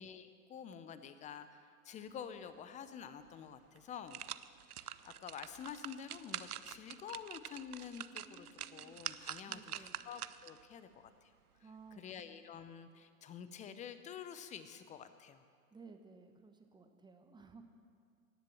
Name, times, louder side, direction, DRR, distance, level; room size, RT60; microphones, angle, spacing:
voice 1, 0.0-4.2 4.8-8.5 8.7-11.3 12.0-15.4, left 8 dB, 15° left, 11 dB, 0.6 m, -49 dB
sound 1, 3.2-3.3 3.8-10.6 11.1-11.2, right 10 dB, 90° right, 0.6 m, -46 dB
voice 2, 8.2-9.0 9.4-10.1 11.6-12.2 15.7-17.6, right 4 dB, 10° right, 5 dB, 1.2 m, -57 dB
18.0 x 7.4 x 7.7 m, 2.1 s
hypercardioid pair, 110°, 44 cm